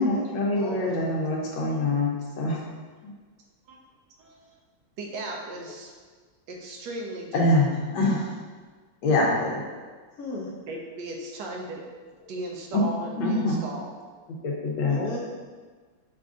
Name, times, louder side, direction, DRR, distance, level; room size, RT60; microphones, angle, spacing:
voice 1, 0.0-2.6 3.0-3.1 7.3-8.3 9.0-9.6 12.7-12.8 13.2-13.6 14.4-15.0, left 2 dB, 90° left, -2 dB, 1.6 m, -24 dB
voice 2, 0.5-1.0 10.2-10.5 12.2-12.3 14.9-15.2, left 1 dB, 60° left, -4 dB, 1.0 m, -34 dB
voice 3, 4.2-4.6 5.0-5.9 6.5-7.4 10.7-11.8 12.3-13.9, right 1 dB, 70° right, 0 dB, 1.2 m, -36 dB
5.6 x 2.5 x 3.6 m, 1.4 s
omnidirectional pair, 2.1 m